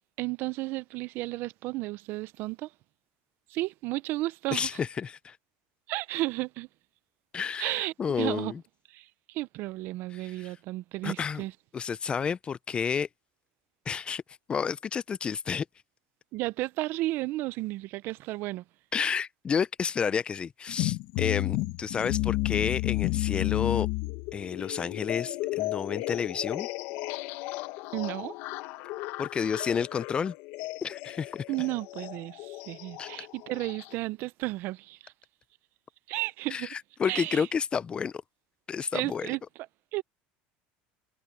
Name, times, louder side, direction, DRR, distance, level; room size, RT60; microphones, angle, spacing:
voice 1, 0.2-2.7 3.5-4.7 5.9-6.7 7.6-8.5 8.9-11.5 16.3-18.6 27.9-28.3 31.5-35.1 36.1-36.7 37.1-37.5 38.9-39.4 39.9-40.0, right 19 dB, 55° right, 0.6 m, -33 dB
voice 2, 4.5-5.4 7.3-8.6 10.1-10.5 11.0-11.4 11.7-13.1 13.9-14.2 14.5-15.7 18.9-23.9 24.3-26.7 29.2-30.3 30.8-31.4 33.0-33.1 36.5-38.2 38.7-39.3, left 6 dB, 25° left, 0.5 m, -30 dB
sound 1, 20.7-34.0, left 19 dB, 65° left, 1.2 m, -33 dB
supercardioid pair, 130°, 4 cm